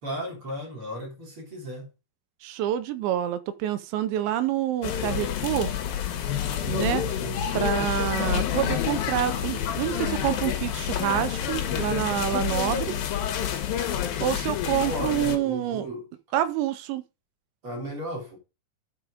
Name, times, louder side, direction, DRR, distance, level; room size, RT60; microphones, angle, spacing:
voice 1, 0.0-1.9 6.4-6.8 14.8-16.1 17.6-18.4, equal, 30° right, 4.4 m, -35 dB
voice 2, 2.4-5.7 6.7-7.0 7.5-13.0 14.2-15.9 16.3-17.0, right 11 dB, 85° right, 3.0 m, -27 dB
sound 1, 4.8-15.4, left 9 dB, 65° left, 2.7 m, -28 dB
10.5 x 5.8 x 5.1 m
omnidirectional pair, 5.2 m